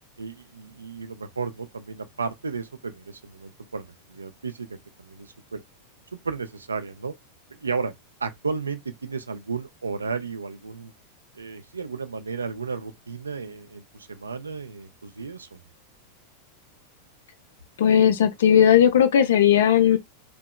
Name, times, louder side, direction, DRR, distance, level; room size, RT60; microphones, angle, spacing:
voice 1, 0.2-5.6 6.1-7.1 7.6-7.9 8.2-10.9 11.3-15.6, right 5 dB, 75° right, 0.4 m, -33 dB
voice 2, 17.8-20.0, left 9 dB, 60° left, 0.4 m, -17 dB
2.7 x 2.1 x 2.2 m
figure-of-eight pair, 90°, 0 cm